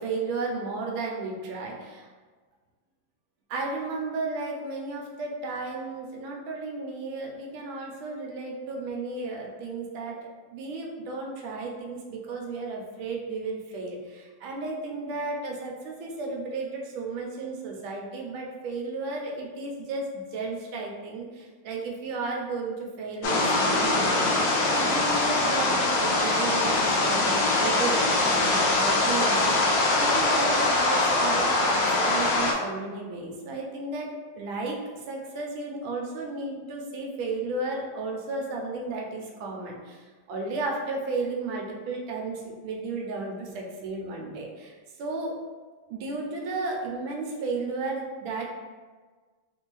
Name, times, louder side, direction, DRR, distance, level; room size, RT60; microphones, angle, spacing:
voice 1, 0.0-2.1 3.5-10.2 10.5-24.2 24.7-34.8 35.1-40.0 40.3-45.4 45.9-48.5, right 3 dB, 80° right, 0 dB, 1.4 m, -33 dB
sound 1, 23.2-32.5, left 2 dB, 75° left, 1.1 m, -23 dB
3.5 x 2.6 x 3.0 m, 1.4 s
omnidirectional pair, 2.3 m